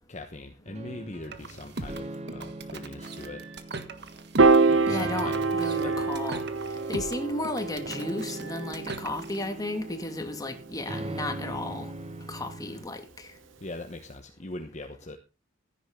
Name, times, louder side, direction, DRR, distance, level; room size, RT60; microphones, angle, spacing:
voice 1, 0.1-3.4 4.7-5.4 5.8-6.1 13.6-15.2, left 2 dB, 35° left, 4 dB, 1.2 m, -41 dB
sound 1, 0.7-12.8, right 1 dB, 35° right, 1.4 m, -41 dB
sound 2, 1.2-9.5, right 3 dB, 60° right, 1.5 m, -41 dB
Piano, 4.4-10.8, right 4 dB, 85° right, 0.9 m, -26 dB
voice 2, 4.9-6.4 6.9-11.9 12.3-13.3, left 2 dB, 20° left, 6 dB, 2.3 m, -34 dB
15.5 x 10.0 x 3.8 m, 0.29 s
head